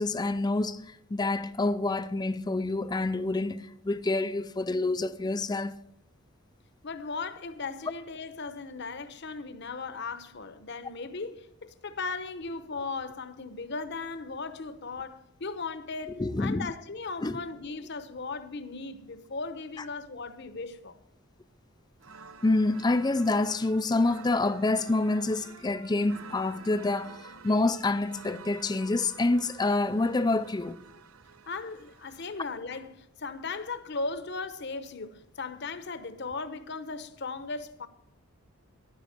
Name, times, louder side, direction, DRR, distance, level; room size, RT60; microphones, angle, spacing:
voice 1, 0.0-5.7 16.1-16.7 17.2-17.4 22.4-30.8, left 2 dB, 20° left, 0.4 m, -27 dB
voice 2, 6.8-21.0 31.5-37.9, left 4 dB, 55° left, 0.9 m, -37 dB
sound 1, 22.0-32.4, right 5 dB, 80° right, 0.7 m, -50 dB
11.5 x 10.0 x 6.5 m
head